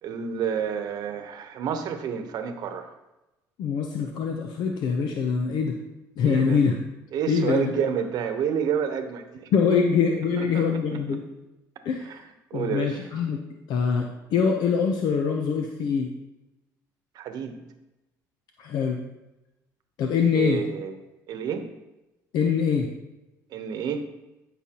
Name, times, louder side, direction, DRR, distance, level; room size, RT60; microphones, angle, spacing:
voice 1, 0.0-2.9 6.3-6.6 7.1-9.5 10.4-11.2 12.5-13.0 17.1-17.6 20.3-20.9 21.3-21.6 23.5-24.0, right 7 dB, 65° right, 8 dB, 0.9 m, -29 dB
voice 2, 3.6-5.8 6.2-6.9 7.3-7.7 9.5-11.2 11.8-12.2 12.5-13.4 13.7-16.1 18.6-19.0 20.0-20.6 22.3-22.9, left 6 dB, 70° left, 3 dB, 0.8 m, -24 dB
12.0 x 5.8 x 2.9 m, 0.99 s
cardioid pair, 95°, 7 cm